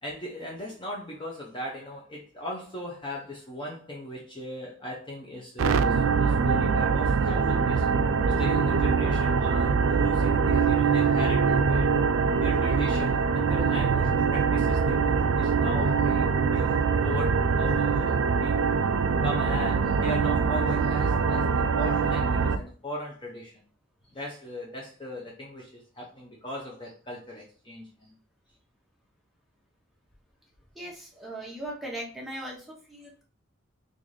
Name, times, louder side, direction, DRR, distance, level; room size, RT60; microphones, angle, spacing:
voice 1, 0.0-7.9 8.3-11.9 12.4-16.2 16.5-18.6 19.2-23.6 24.1-28.2, left 1 dB, 25° left, -3 dB, 0.6 m, -38 dB
sound 1, 5.6-22.6, right 5 dB, 85° right, 0.4 m, -23 dB
voice 2, 30.8-33.2, right 1 dB, ahead, -3 dB, 0.9 m, -39 dB
3.9 x 2.5 x 3.1 m, 0.38 s
head